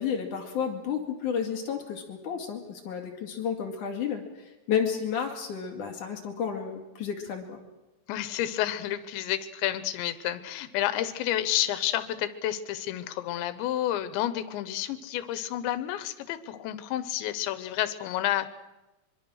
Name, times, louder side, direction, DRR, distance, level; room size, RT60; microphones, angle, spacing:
voice 1, 0.0-4.2 4.7-7.6, left 7 dB, 50° left, 2 dB, 3.5 m, -31 dB
voice 2, 8.1-18.5, left 12 dB, 85° left, 13 dB, 3.3 m, -30 dB
24.0 x 23.5 x 6.4 m, 1.1 s
omnidirectional pair, 5.1 m